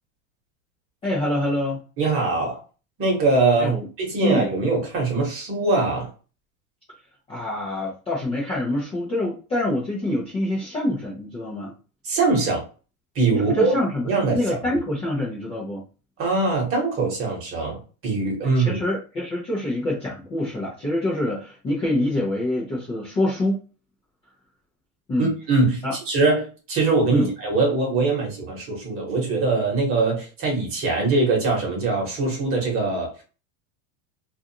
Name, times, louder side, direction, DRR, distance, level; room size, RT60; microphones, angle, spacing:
voice 1, 1.0-1.8 3.6-3.9 4.2-4.5 7.3-11.7 13.3-15.8 18.4-23.6 25.1-25.3 25.8-25.9 27.1-27.3, left 1 dB, 15° left, 0.5 m, -26 dB
voice 2, 2.0-2.6 3.0-6.1 12.0-12.6 13.1-13.7 14.0-14.4 16.2-18.8 25.2-33.1, right 3 dB, 30° right, 1.1 m, -22 dB
2.5 x 2.3 x 2.8 m
supercardioid pair, 150°, 46 cm